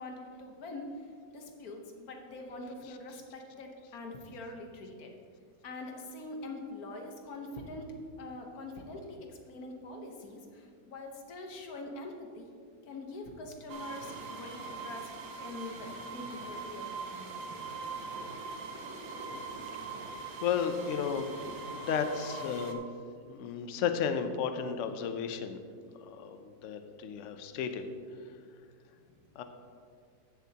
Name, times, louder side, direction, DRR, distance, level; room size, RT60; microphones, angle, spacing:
voice 1, 0.0-5.1 5.6-7.9 8.2-12.5 12.9-15.1 15.4-17.5 28.9-29.3, left 2 dB, 55° left, 2 dB, 1.5 m, -44 dB
sound 1, 13.7-22.7, right 4 dB, 60° right, 1.1 m, -42 dB
voice 2, 20.4-21.3 21.7-22.8 23.3-25.6 26.0-27.8 29.4-29.5, left 7 dB, 90° left, 8 dB, 0.6 m, -33 dB
14.5 x 7.1 x 2.9 m, 2.2 s
omnidirectional pair, 2.0 m